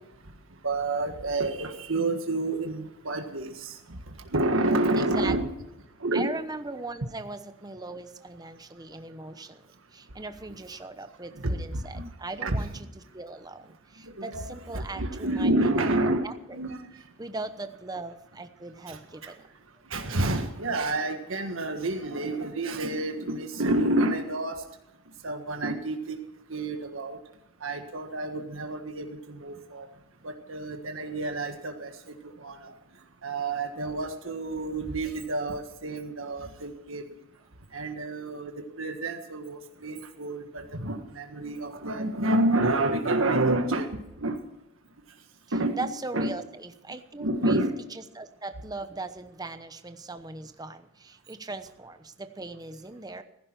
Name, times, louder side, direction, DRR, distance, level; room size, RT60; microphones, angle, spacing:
voice 1, 0.6-3.7 4.3-5.5 6.0-6.3 11.4-12.1 12.4-12.7 14.2-14.5 14.7-16.2 16.5-16.8 18.9-19.3 19.9-24.6 25.2-26.2 26.5-27.2 27.6-29.8 30.2-31.9 32.4-32.7 33.2-37.0 37.7-38.5 38.8-44.4 45.5-45.8 46.1-46.3 47.2-47.8, right 2 dB, 80° right, 5 dB, 1.6 m, -29 dB
voice 2, 4.9-5.3 6.1-9.7 9.9-12.9 13.1-16.3 17.2-19.4 45.7-47.6 48.1-53.2, right 3 dB, 20° right, 9 dB, 0.9 m, -39 dB
16.0 x 15.0 x 4.6 m, 0.89 s
head